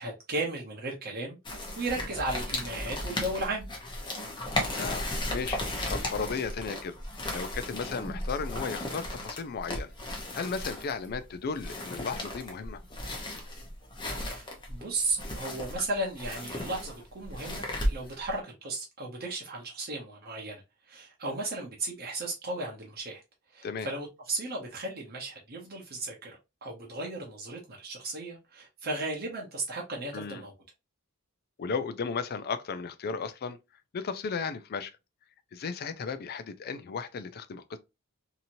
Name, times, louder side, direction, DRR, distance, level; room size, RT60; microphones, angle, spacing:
voice 1, 0.0-3.7 14.1-20.6 20.9-23.2 23.5-30.5, right 2 dB, 45° right, 0.8 m, -35 dB
sound 1, 1.5-18.3, left 1 dB, 20° left, 0.8 m, -35 dB
voice 2, 4.8-5.6 5.9-7.0 7.3-12.8 23.6-23.9 30.1-30.4 31.6-33.6 33.9-35.0 35.5-37.8, left 5 dB, 45° left, 0.4 m, -35 dB
2.9 x 2.7 x 2.6 m
head